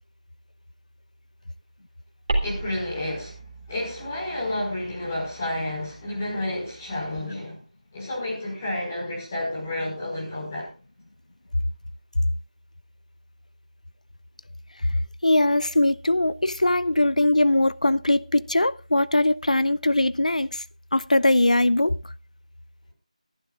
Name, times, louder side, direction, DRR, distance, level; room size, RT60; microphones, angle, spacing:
sound 1, 2.3-7.1, right 2 dB, 35° right, 3.2 m, -35 dB
voice 1, 2.4-3.4 3.7-7.6 7.9-10.7, left 1 dB, 20° left, 5.2 m, -30 dB
voice 2, 15.2-20.6 20.9-22.0, left 1 dB, 80° left, 0.7 m, -21 dB
22.0 x 11.5 x 2.5 m
figure-of-eight pair, 170°, 4 cm